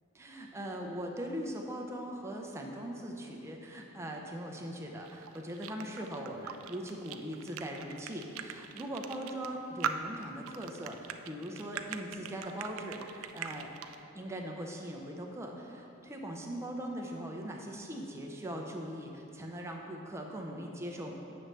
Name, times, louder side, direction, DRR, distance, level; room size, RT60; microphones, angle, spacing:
voice 1, 0.1-13.7 14.1-21.1, equal, 15° right, 0 dB, 0.5 m, -40 dB
sound 1, 5.1-14.0, right 8 dB, 75° right, 0.3 m, -40 dB
7.8 x 6.2 x 3.2 m, 3.0 s
head